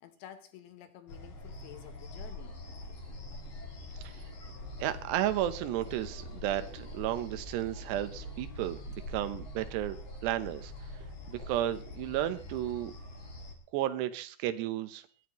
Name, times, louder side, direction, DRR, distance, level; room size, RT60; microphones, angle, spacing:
voice 1, 0.0-2.6 11.0-11.1, left 11 dB, 75° left, 9 dB, 2.9 m, -51 dB
sound 1, 1.1-13.5, left 1 dB, 50° left, 1.5 m, -44 dB
sound 2, 2.5-8.5 8.9-9.0, right 3 dB, 45° right, 3.5 m, -62 dB
voice 2, 4.8-8.8 9.1-10.0 10.2-10.7 11.3-12.9 13.7-15.0, right 13 dB, 80° right, 11 dB, 2.6 m, -33 dB
21.5 x 13.0 x 3.0 m, 0.40 s
omnidirectional pair, 5.6 m